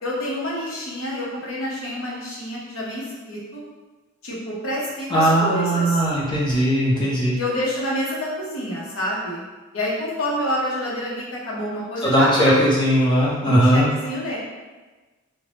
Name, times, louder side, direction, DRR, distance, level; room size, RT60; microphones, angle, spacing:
voice 1, 0.0-3.6 4.2-6.0 7.3-9.4 9.7-12.6 13.4-14.4, left 1 dB, 90° left, -5 dB, 0.8 m, -28 dB
voice 2, 5.1-7.4 12.0-13.9, right 1 dB, 25° left, -7 dB, 0.7 m, -18 dB
2.5 x 2.2 x 3.3 m, 1.3 s
head